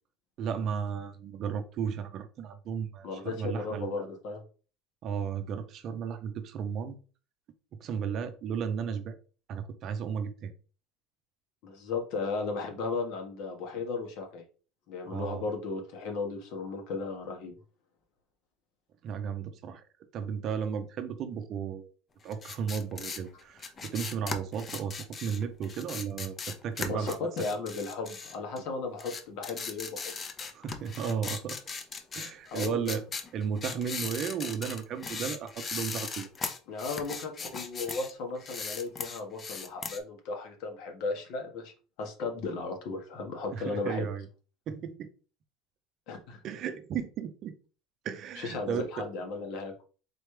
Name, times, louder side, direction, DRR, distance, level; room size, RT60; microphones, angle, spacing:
voice 1, 0.4-4.1 5.0-7.0 7.8-9.2 9.5-10.5 15.0-15.5 19.0-19.8 20.1-21.9 22.2-27.2 30.5-31.6 32.1-33.0 33.3-36.3 43.5-44.3 44.7-45.1 46.4-47.5 48.0-48.9, right 7 dB, 40° right, 9 dB, 0.5 m, -34 dB
voice 2, 3.0-4.4 11.6-14.4 14.9-17.5 26.9-30.1 30.4-30.5 32.5-33.0 36.7-41.7 42.0-44.1 46.1-46.4 48.4-49.7, left 4 dB, 60° left, 3 dB, 1.3 m, -35 dB
sound 1, 22.3-28.7 29.0-38.1 38.4-40.0, left 5 dB, 25° left, 0.5 m, -38 dB
4.1 x 3.3 x 3.2 m, 0.37 s
cardioid pair, 150°, 0 cm